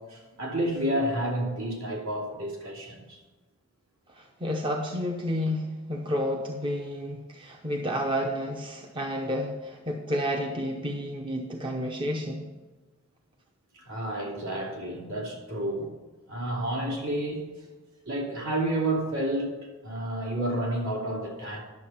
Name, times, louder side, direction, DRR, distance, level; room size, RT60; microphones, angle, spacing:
voice 1, 0.0-3.2 13.7-15.9 16.3-17.4 18.1-19.6 19.8-21.6, right 1 dB, 70° right, -2 dB, 2.9 m, -30 dB
voice 2, 4.1-12.5, equal, 25° right, 2 dB, 0.7 m, -30 dB
10.5 x 7.1 x 5.7 m, 1.2 s
head